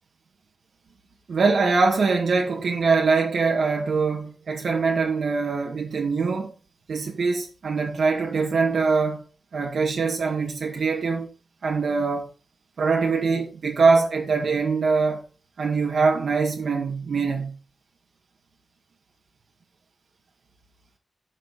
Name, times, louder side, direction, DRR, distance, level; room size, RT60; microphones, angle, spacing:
voice 1, 1.3-6.5 6.9-9.2 9.5-11.3 11.6-12.3 12.8-15.2 15.6-17.5, right 4 dB, 70° right, 1.9 m, -23 dB
11.0 x 6.4 x 4.3 m
wide cardioid pair, 140°, 0 cm